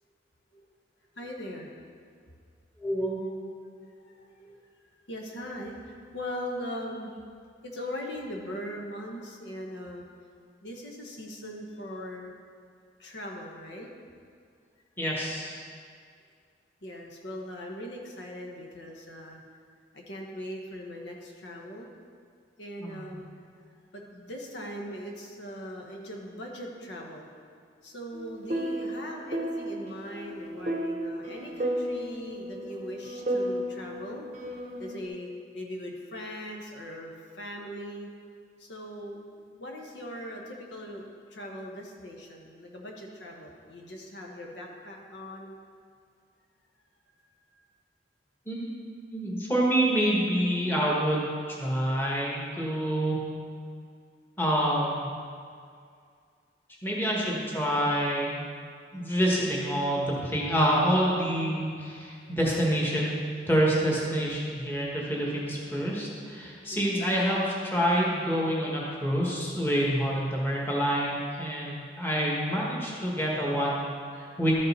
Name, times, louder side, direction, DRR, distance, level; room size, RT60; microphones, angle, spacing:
voice 1, 1.2-1.8 3.6-4.6 5.1-7.1 7.6-10.0 10.6-12.3 13.0-13.9 16.8-19.4 19.9-21.9 22.6-23.3 23.9-27.3 27.8-34.3 34.8-38.1 38.6-45.5 47.2-47.3 66.7-67.0 74.3-74.4, equal, 80° left, 0 dB, 1.1 m, -40 dB
voice 2, 2.8-3.2 15.0-15.6 22.8-23.1 48.5-48.8 49.1-53.2 54.4-55.1 56.8-58.5 58.9-74.5, equal, 10° left, -4 dB, 1.3 m, -27 dB
sound 1, 28.1-35.0, right 1 dB, 40° right, 0.7 m, -34 dB
12.5 x 5.3 x 4.1 m, 2.2 s
head